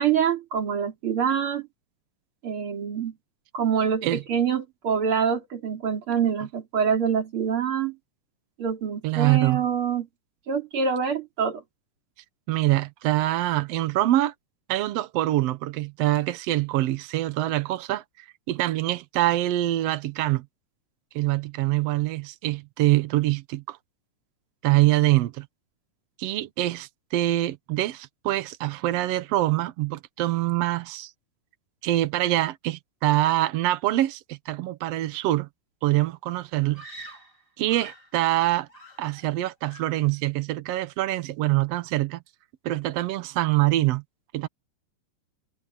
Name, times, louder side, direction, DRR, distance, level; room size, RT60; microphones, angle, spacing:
voice 1, 0.0-1.7 2.4-3.1 3.5-8.0 8.6-10.1 10.5-11.6, right 7 dB, 40° right, 3.2 m, -25 dB
voice 2, 9.0-9.6 12.5-14.3 14.7-20.4 21.1-23.8 24.6-25.5 26.2-31.1 31.8-35.5 35.8-36.8 37.6-38.7 39.0-42.2 42.6-44.0 44.3-44.5, right 16 dB, 85° right, 1.4 m, -24 dB
Screaming, 36.7-38.2 38.7-39.4 39.6-40.1, right 2 dB, 20° left, 5.8 m, -45 dB
omnidirectional pair, 3.9 m